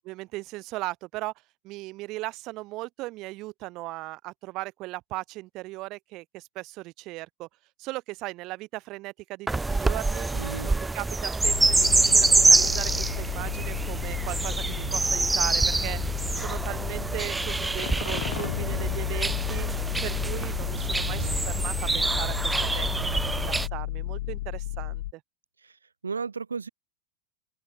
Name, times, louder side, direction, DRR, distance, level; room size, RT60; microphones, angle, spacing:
voice 1, 0.1-1.3 1.6-7.5 7.8-10.3 10.6-16.0 16.3-19.7 20.0-23.1 23.3-25.2, right 20 dB, 45° right, 3.6 m, -37 dB
sound 1, 9.5-23.7, right 3 dB, 10° right, 0.5 m, -26 dB
voice 2, 10.3-10.7 21.1-21.4 25.6-25.7 26.0-26.7, right 5 dB, 85° right, 1.4 m, -34 dB
sound 2, 11.4-25.1, left 16 dB, 60° left, 5.9 m, -33 dB
open air
figure-of-eight pair, 90°, 0 cm